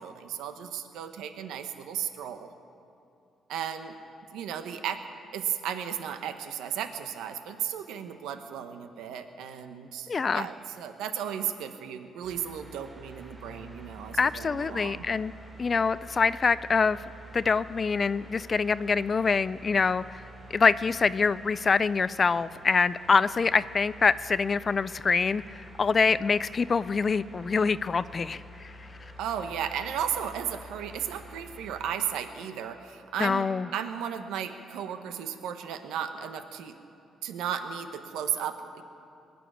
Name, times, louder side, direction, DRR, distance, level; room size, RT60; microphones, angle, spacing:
voice 1, 0.0-2.5 3.5-4.0 4.3-5.0 5.3-15.0 29.2-33.5 33.7-36.8 37.2-38.8, right 9 dB, 90° right, 8 dB, 0.9 m, -35 dB
voice 2, 10.1-10.5 14.2-15.3 15.6-17.0 17.3-20.2 20.5-28.7 33.2-33.7, left 5 dB, 35° left, 16 dB, 0.3 m, -25 dB
sound 1, 12.2-31.9, right 1 dB, 20° right, 3.3 m, -48 dB
20.5 x 6.9 x 10.0 m, 2.6 s
cardioid pair, 90°, 0 cm